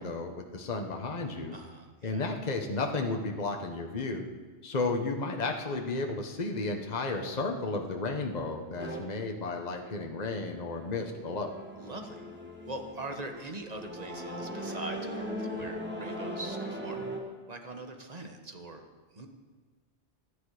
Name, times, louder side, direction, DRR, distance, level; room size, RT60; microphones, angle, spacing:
voice 1, 0.0-1.6 2.0-4.2 4.6-11.5, left 3 dB, 40° left, 3 dB, 1.3 m, -33 dB
voice 2, 1.5-2.3 11.8-12.2 12.7-17.1 17.5-18.8 19.1-19.3, right 2 dB, 35° right, 5 dB, 1.6 m, -42 dB
sound 1, 8.8-9.0 10.1-17.2, equal, 10° right, 1.9 m, -39 dB
25.0 x 10.0 x 5.0 m, 1.4 s
omnidirectional pair, 1.2 m